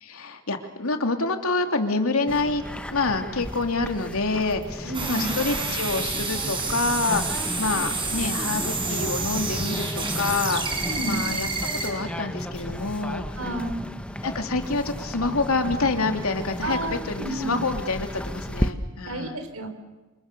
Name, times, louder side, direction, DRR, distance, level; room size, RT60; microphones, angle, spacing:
voice 1, 0.0-2.6 2.9-13.4 14.2-19.4, left 3 dB, 90° left, 5 dB, 2.8 m, -27 dB
sound 1, 2.3-18.7, equal, 5° left, 1.2 m, -34 dB
voice 2, 4.8-5.3 10.9-11.2 13.4-13.9 16.6-17.6 19.1-19.7, right 1 dB, 85° right, 7 dB, 4.3 m, -31 dB
sound 2, 4.9-11.9, right 4 dB, 25° right, 5.9 m, -29 dB
28.0 x 28.0 x 6.9 m, 1.2 s
head